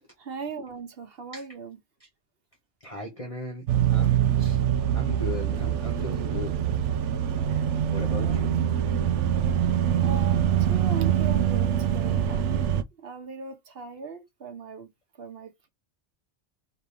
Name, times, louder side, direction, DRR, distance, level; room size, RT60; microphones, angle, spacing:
voice 1, 0.2-1.8 8.0-8.4 9.0-9.2 10.0-12.7 13.0-14.9 15.2-15.7, right 5 dB, 55° right, 1.1 m, -39 dB
voice 2, 2.8-4.6 4.9-6.5 7.5-8.5, left 2 dB, 30° left, 1.1 m, -37 dB
sound 1, 3.7-12.8, right 10 dB, 75° right, 0.9 m, -24 dB
4.3 x 3.0 x 3.4 m
omnidirectional pair, 1.2 m